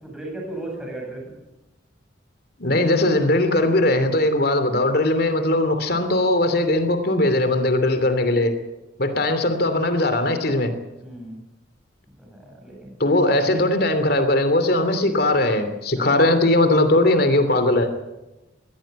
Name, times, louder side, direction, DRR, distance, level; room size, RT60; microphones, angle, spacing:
voice 1, 0.0-1.2 11.0-11.4 12.1-13.0 16.0-16.3, right 1 dB, 5° right, -1 dB, 7.9 m, -36 dB
voice 2, 2.6-8.5 9.0-10.7 13.0-17.9, left 1 dB, 55° left, 9 dB, 2.9 m, -19 dB
22.5 x 16.0 x 8.8 m, 1.0 s
head